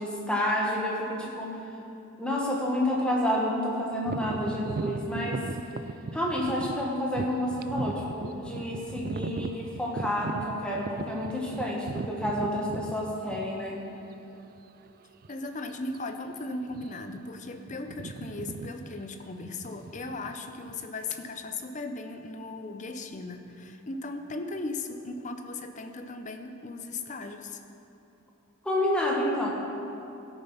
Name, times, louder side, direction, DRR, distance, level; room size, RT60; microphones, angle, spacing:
voice 1, 0.0-1.6 2.2-5.5 6.1-13.8 28.6-29.5, left 1 dB, 5° left, -3 dB, 1.5 m, -29 dB
sound 1, 4.0-13.8 14.5-14.6 15.2-15.5 15.7-16.0 16.6-17.2 17.4-20.9, right 3 dB, 45° right, 0.3 m, -37 dB
voice 2, 15.3-27.6, left 2 dB, 35° left, 6 dB, 0.7 m, -37 dB
15.5 x 6.9 x 5.6 m, 2.8 s
head